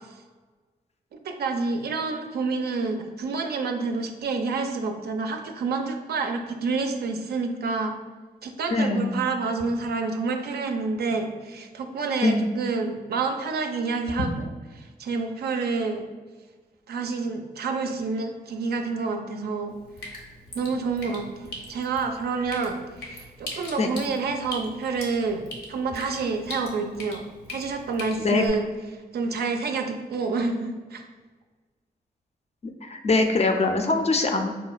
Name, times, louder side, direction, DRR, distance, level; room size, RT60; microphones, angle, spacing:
voice 1, 1.1-8.0 8.4-14.5 14.7-16.1 16.9-19.7 20.5-25.4 25.7-27.2 27.5-31.0, right 4 dB, 70° right, 5 dB, 0.4 m, -28 dB
voice 2, 8.7-9.2 12.2-12.5 23.8-23.9 28.2-28.4 32.8-34.5, left 3 dB, 40° left, 4 dB, 0.4 m, -22 dB
Drip, 19.7-28.5, left 1 dB, 85° left, 0.7 m, -41 dB
3.8 x 2.1 x 2.3 m, 1.3 s
cardioid pair, 60°, 17 cm